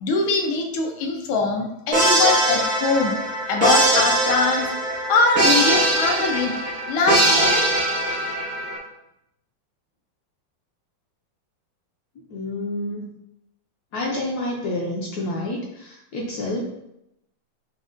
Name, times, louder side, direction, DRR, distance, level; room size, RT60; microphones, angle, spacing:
voice 1, 0.0-3.2 3.5-4.7 5.1-6.5 6.9-7.7, left 4 dB, 85° left, 2 dB, 1.4 m, -22 dB
sound 1, 1.9-8.8, right 1 dB, 65° right, 0.4 m, -21 dB
voice 2, 12.3-13.1 13.9-16.6, left 1 dB, 70° left, -2 dB, 0.9 m, -28 dB
6.1 x 2.1 x 2.5 m, 0.83 s
omnidirectional pair, 2.1 m